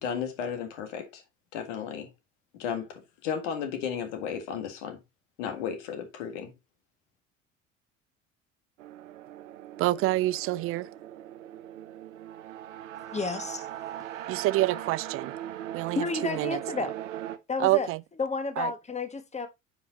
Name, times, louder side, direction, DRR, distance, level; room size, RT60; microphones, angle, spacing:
voice 1, 0.0-1.2 1.5-2.1 2.6-5.0 5.4-6.5, left 7 dB, 65° left, 1.9 m, -34 dB
sound 1, 8.8-17.4, right 12 dB, 75° right, 0.8 m, -39 dB
voice 2, 9.8-10.9 14.3-15.3 15.7-16.9 17.6-18.0 18.6-18.7, right 17 dB, 35° right, 0.4 m, -27 dB
voice 3, 13.1-13.7 15.9-16.9 17.5-17.9 18.2-19.5, left 4 dB, 15° left, 1.3 m, -31 dB
9.1 x 5.1 x 2.7 m
figure-of-eight pair, 65°, 39 cm